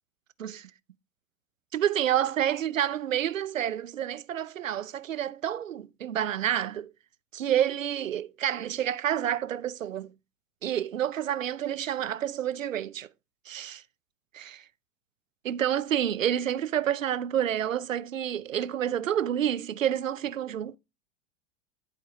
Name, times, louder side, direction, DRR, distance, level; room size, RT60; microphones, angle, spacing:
voice 1, 0.4-0.7 1.7-6.9 7.3-10.1 10.6-13.1 13.5-13.8 14.3-14.6 15.4-20.8, right 10 dB, 75° right, 0.7 m, -29 dB
11.5 x 4.8 x 3.6 m
figure-of-eight pair, 90°, 40 cm